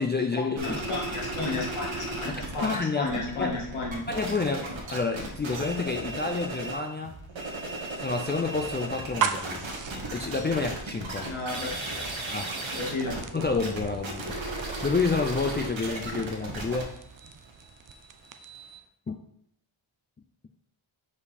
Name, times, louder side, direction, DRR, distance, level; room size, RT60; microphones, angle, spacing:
voice 1, 0.0-0.8 2.3-3.6 4.1-7.1 8.0-9.6 10.1-11.3 12.3-12.6 13.3-17.0 19.1-19.2, left 4 dB, 25° left, 3 dB, 0.4 m, -29 dB
voice 2, 0.6-4.0 11.2-12.0 12.7-13.2, left 2 dB, 75° left, -3 dB, 2.1 m, -33 dB
sound 1, 0.6-2.8 3.0-6.8 7.2-18.8, right 2 dB, 65° right, 1.5 m, -35 dB
sound 2, 4.0-4.3 4.8-5.0 5.5-7.3 7.8-8.0 8.5-10.3 10.8-11.0 11.5-13.0, right 3 dB, 90° right, 1.6 m, -49 dB
sound 3, 9.1-18.7, right 7 dB, 40° right, 0.5 m, -39 dB
5.2 x 4.8 x 4.2 m, 0.72 s
wide cardioid pair, 95°, 49 cm